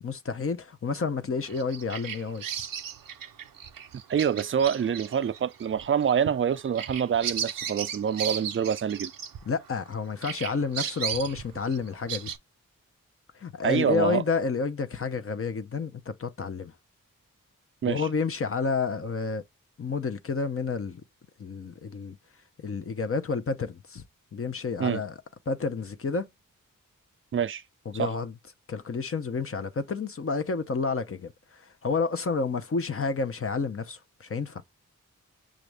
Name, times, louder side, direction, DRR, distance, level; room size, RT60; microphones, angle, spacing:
voice 1, 0.0-2.4 9.5-12.3 13.4-16.7 17.9-19.4 19.8-21.0 21.4-22.2 22.6-24.0 24.3-25.1 25.5-26.3 27.9-28.3 28.7-34.6, left 4 dB, 40° left, 0.7 m, -30 dB
Bird vocalization bird call bird song, 1.5-9.9 10.2-12.4, right 8 dB, 85° right, 0.6 m, -36 dB
voice 2, 4.1-9.1 13.6-14.2 17.8-18.1 24.8-25.0 27.3-27.6 27.9-28.1, right 8 dB, 40° right, 0.4 m, -26 dB
6.1 x 2.5 x 3.3 m
cardioid pair, 45°, 33 cm